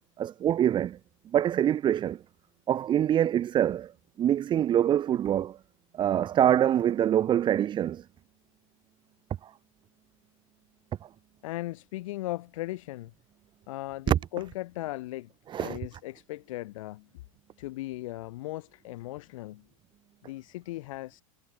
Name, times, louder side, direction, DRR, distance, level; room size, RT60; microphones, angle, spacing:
voice 1, 0.2-1.0 1.3-2.2 2.7-3.9 4.2-5.6 5.9-8.0 9.4-9.5 14.1-14.2 15.5-15.8, right 10 dB, 25° right, 1.1 m, -25 dB
voice 2, 11.4-13.1 13.7-15.3 15.6-17.1 17.6-19.7 20.2-21.2, left 17 dB, 65° left, 2.3 m, -37 dB
hypercardioid pair, 125°, 18 cm